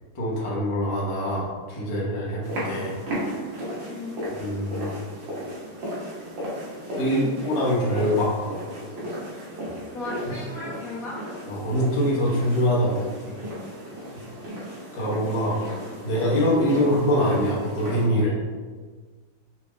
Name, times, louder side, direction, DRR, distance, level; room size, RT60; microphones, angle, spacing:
voice 1, 0.1-3.0 4.4-4.9 6.9-8.3 11.5-13.3 14.9-15.6 16.0-18.4, equal, 30° left, -6 dB, 0.5 m, -24 dB
sound 1, 2.4-18.1, equal, 85° right, 1.8 m, -35 dB
voice 2, 3.9-4.2 7.0-7.3 9.9-11.2 15.3-15.9 16.7-16.9, left 2 dB, 65° left, -5 dB, 0.9 m, -36 dB
4.2 x 2.4 x 3.1 m, 1.4 s
omnidirectional pair, 2.0 m